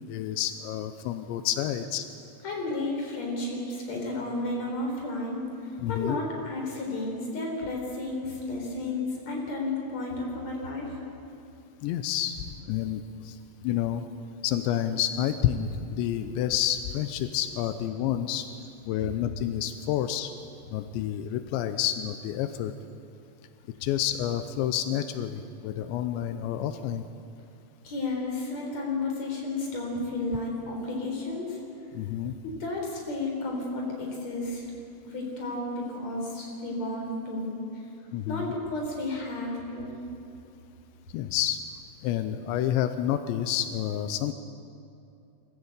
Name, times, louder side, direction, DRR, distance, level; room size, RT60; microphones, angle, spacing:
voice 1, 0.0-2.1 5.8-6.2 11.8-13.4 13.6-14.0 14.4-18.5 18.9-20.3 20.7-22.7 23.8-27.0 31.9-32.3 38.1-38.5 41.1-41.6 42.0-44.3, left 11 dB, 85° left, 10 dB, 2.6 m, -29 dB
voice 2, 2.4-11.0 27.8-31.6 32.4-34.6 35.0-37.6 38.3-39.9, left 2 dB, 35° left, 0 dB, 4.7 m, -32 dB
24.5 x 14.5 x 8.2 m, 2.7 s
omnidirectional pair, 5.9 m